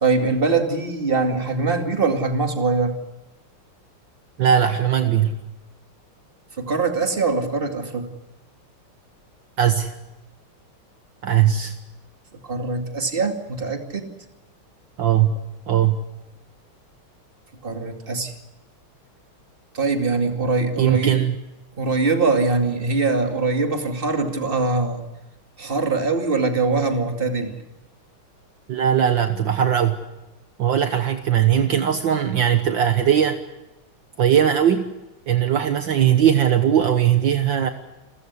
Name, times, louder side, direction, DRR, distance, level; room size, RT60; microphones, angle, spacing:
voice 1, 0.0-3.0 6.6-8.1 12.4-14.1 17.6-18.3 19.7-21.2 21.8-25.0 25.6-27.6, right 3 dB, 25° right, 5 dB, 2.6 m, -22 dB
voice 2, 4.4-5.4 9.6-9.9 11.2-11.8 15.0-16.0 20.8-21.3 28.7-30.0 30.6-33.4 34.2-34.9 35.3-37.7, right 9 dB, 65° right, 8 dB, 1.8 m, -19 dB
29.0 x 14.5 x 9.7 m, 1.0 s
omnidirectional pair, 2.3 m